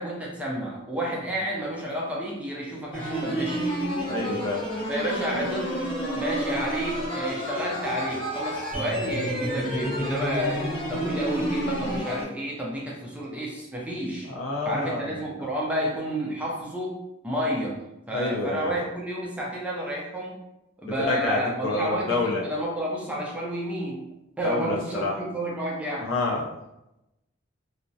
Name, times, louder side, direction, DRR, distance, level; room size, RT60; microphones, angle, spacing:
voice 1, 0.0-3.8 4.9-5.8 6.1-14.3 14.6-17.0 17.2-17.8 18.1-20.4 20.8-24.0 24.4-26.1, equal, 5° right, -3 dB, 0.4 m, -30 dB
sound 1, 2.9-12.3, equal, 25° left, 0.7 m, -30 dB
voice 2, 4.1-4.6 14.3-15.1 15.4-15.5 18.1-18.8 21.0-22.4 24.4-25.1 26.0-26.4, left 3 dB, 85° left, -1 dB, 0.6 m, -28 dB
2.4 x 2.0 x 2.6 m, 0.90 s
head